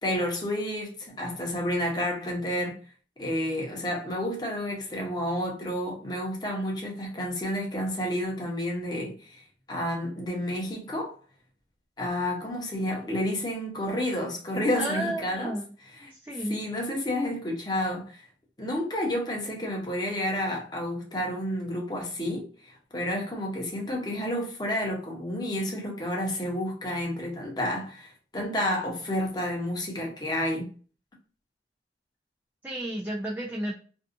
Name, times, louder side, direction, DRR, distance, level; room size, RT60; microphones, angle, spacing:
voice 1, 0.0-2.8 3.2-9.4 9.7-11.2 12.0-15.5 16.0-16.1 16.5-18.2 18.6-30.7, left 1 dB, 25° left, 0.8 m, -30 dB
voice 2, 14.8-15.7 16.1-16.6 32.6-33.7, right 1 dB, 10° right, 0.4 m, -32 dB
2.6 x 2.3 x 2.5 m
head